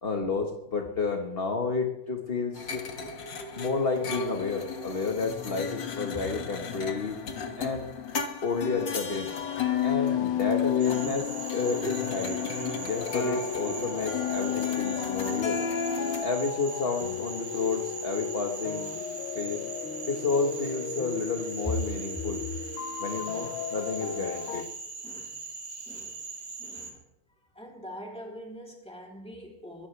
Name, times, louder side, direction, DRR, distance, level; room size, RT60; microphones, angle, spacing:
voice 1, 0.0-2.8 3.5-7.2 7.6-7.9 8.4-9.3 9.8-12.4 12.8-15.6 16.2-18.9 19.3-19.6 20.1-22.4 23.0-24.7, left 4 dB, 30° left, 2 dB, 1.4 m, -31 dB
sound 1, 2.5-16.2, left 7 dB, 60° left, 2.2 m, -32 dB
sound 2, 9.3-24.6, left 8 dB, 80° left, 1.8 m, -38 dB
Cricket / Frog, 10.8-26.9, right 4 dB, 65° right, 3.5 m, -40 dB
voice 2, 25.0-25.3 25.9-26.2 26.6-27.0 27.5-29.9, left 1 dB, 5° left, -1 dB, 3.3 m, -39 dB
23.0 x 17.0 x 3.4 m, 0.84 s
omnidirectional pair, 2.4 m